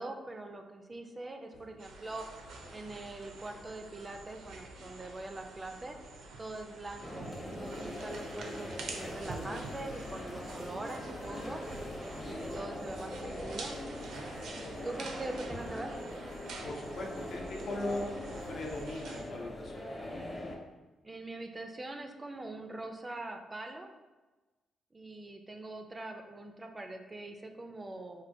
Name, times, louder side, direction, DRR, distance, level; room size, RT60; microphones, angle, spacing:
voice 1, 0.0-2.3 2.7-6.0 6.4-8.7 8.9-11.6 12.3-13.8 14.8-15.9 21.0-23.9 24.9-28.2, right 2 dB, 25° right, 4 dB, 0.3 m, -43 dB
sound 1, 1.5-1.8 2.3-3.2 3.5-5.3 5.7-6.3 6.6-7.6 7.9-10.6 11.0-14.0 14.4-15.0 15.4-19.0, equal, 85° left, 0.9 m, -56 dB
sound 2, 1.8-19.2, right 3 dB, 80° right, 0.5 m, -47 dB
sound 3, 7.0-20.6, left 1 dB, 20° left, 0.7 m, -42 dB
voice 2, 16.6-18.1 18.5-19.9, left 2 dB, 60° left, 0 dB, 0.6 m, -39 dB
4.2 x 2.5 x 2.6 m, 1.2 s
cardioid pair, 95°, 0 cm